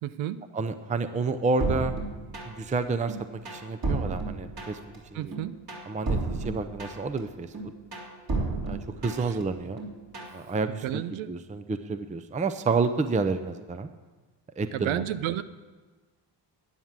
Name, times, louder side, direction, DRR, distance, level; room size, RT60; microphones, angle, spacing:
voice 1, 0.0-0.4 5.1-5.5 10.7-11.3 14.7-15.4, right 12 dB, 85° right, 14 dB, 0.7 m, -31 dB
voice 2, 0.5-1.9 2.5-4.8 5.1-5.4 5.9-7.5 8.7-9.8 10.3-13.9 14.6-15.0, right 4 dB, 15° right, 10 dB, 0.6 m, -29 dB
sound 1, 1.6-2.7 3.1-5.0 5.3-7.2 7.5-9.4 9.8-10.4, right 3 dB, 50° right, 3.2 m, -32 dB
11.0 x 9.4 x 7.4 m, 1.3 s
cardioid pair, 90°, 46 cm